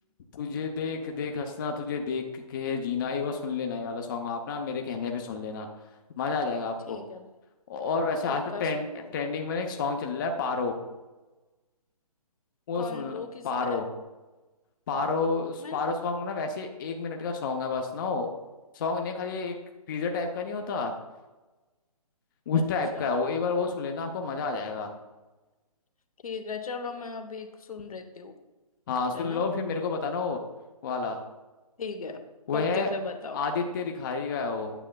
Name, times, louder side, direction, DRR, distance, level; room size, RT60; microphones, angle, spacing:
voice 1, 0.3-5.7 6.2-7.0 7.7-8.9 9.1-10.8 12.7-13.9 14.9-18.3 18.7-19.5 19.9-20.9 22.5-24.9 28.9-30.4 30.8-31.2 32.5-32.9 33.3-34.7, left 4 dB, 35° left, 3 dB, 0.6 m, -30 dB
voice 2, 6.9-7.3 8.3-9.1 12.7-13.8 15.6-15.8 22.5-22.6 22.9-23.2 26.2-28.3 29.1-29.4 31.8-32.2 32.5-33.4, left 4 dB, 65° left, 6 dB, 0.9 m, -37 dB
8.9 x 7.0 x 2.3 m, 1.1 s
figure-of-eight pair, 140°, 20 cm